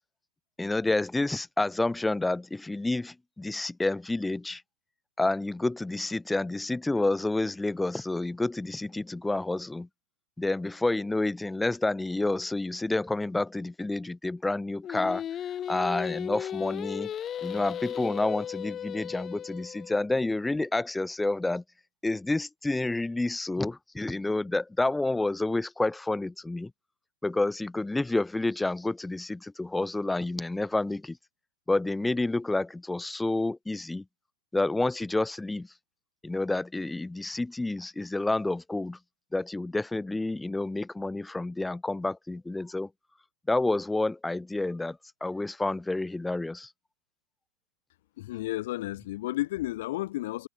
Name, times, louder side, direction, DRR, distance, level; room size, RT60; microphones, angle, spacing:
voice 1, 0.6-4.6 5.2-9.9 10.4-15.2 15.7-17.1 17.4-21.6 22.0-26.7 27.2-31.2 31.7-34.0 34.5-35.7 36.2-39.0 39.3-42.9 43.5-46.7, left 2 dB, 5° left, 1.3 m, -29 dB
Singing, 14.8-20.0, left 10 dB, 25° left, 0.4 m, -35 dB
voice 2, 48.2-50.5, left 16 dB, 65° left, 2.0 m, -32 dB
hypercardioid pair, 120°, 0 cm